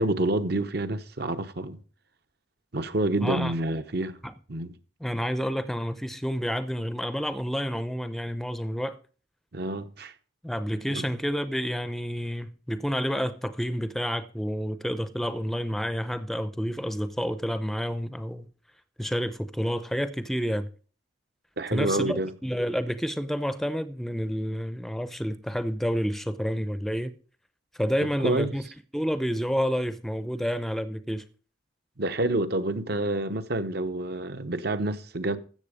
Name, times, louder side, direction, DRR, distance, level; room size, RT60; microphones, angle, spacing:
voice 1, 0.0-1.8 2.7-4.2 4.5-4.8 9.5-10.1 10.9-11.0 21.6-22.3 28.2-28.5 32.0-35.4, right 2 dB, 55° right, 0.9 m, -28 dB
voice 2, 3.2-3.6 4.2-4.3 5.0-9.0 10.4-18.5 19.0-20.7 21.7-27.1 27.8-28.6 28.9-31.2, equal, ahead, 0.6 m, -29 dB
13.5 x 7.7 x 5.0 m
head